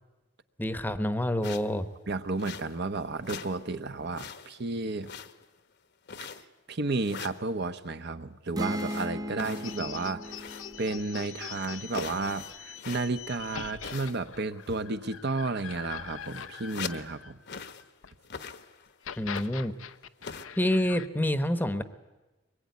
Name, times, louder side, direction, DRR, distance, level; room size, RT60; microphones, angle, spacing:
voice 1, 0.6-1.8 19.2-19.7 20.6-21.8, left 1 dB, 10° left, 11 dB, 1.0 m, -27 dB
sound 1, 1.4-1.8 2.4-2.9 3.2-3.6 3.9-4.6 5.0-5.6 6.1-6.6 7.0-7.5 8.7-10.8 11.1-11.2 11.6-13.3 13.8-14.4 14.6-14.9 15.6-15.7 15.9-17.1 17.5-17.9 18.2-18.9 19.3-19.7 20.2-20.5, left 6 dB, 55° left, 1.2 m, -42 dB
voice 2, 2.1-5.1 6.7-10.4 10.8-17.4, right 3 dB, 55° right, 10 dB, 0.9 m, -32 dB
sound 2, 8.5-12.3, equal, 20° right, 0.8 m, -37 dB
sound 3, 9.6-18.1 18.9-21.1, left 8 dB, 90° left, 0.9 m, -43 dB
23.5 x 21.0 x 9.5 m, 1.1 s
head